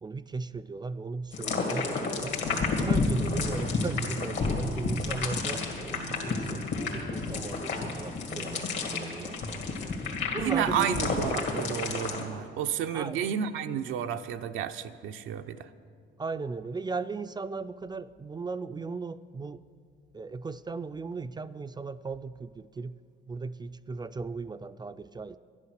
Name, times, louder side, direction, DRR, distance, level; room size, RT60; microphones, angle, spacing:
voice 1, 0.0-2.4 2.8-6.6 6.9-9.8 10.3-11.0 12.9-13.3 16.2-19.6 20.1-23.0 23.3-25.4, right 4 dB, 20° right, 13 dB, 0.3 m, -37 dB
sound 1, 1.3-12.2, left 4 dB, 70° left, 2.1 m, -31 dB
sound 2, 1.4-10.5, left 1 dB, 90° left, 1.8 m, -44 dB
voice 2, 10.3-15.6, right 9 dB, 90° right, 7 dB, 0.6 m, -31 dB
11.5 x 10.5 x 6.5 m, 2.2 s
cardioid pair, 90°, 20 cm